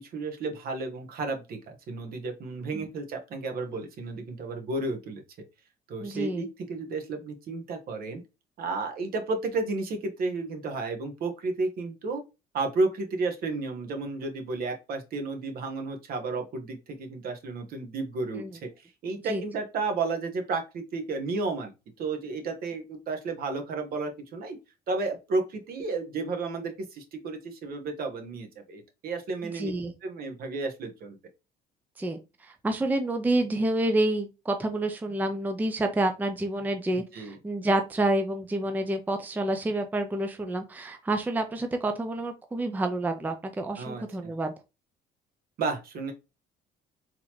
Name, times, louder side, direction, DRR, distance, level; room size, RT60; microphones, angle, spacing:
voice 1, 0.1-5.2 5.9-8.2 8.6-12.2 12.5-21.7 22.0-24.6 24.9-29.7 30.0-31.2 36.9-37.4 43.8-44.3 45.6-46.1, right 3 dB, 60° right, 1.1 m, -32 dB
voice 2, 6.0-6.5 18.3-18.5 19.3-19.4 29.6-29.9 32.0-44.5, right 1 dB, 10° right, 0.5 m, -28 dB
3.9 x 2.9 x 3.0 m
cardioid pair, 110°, 17 cm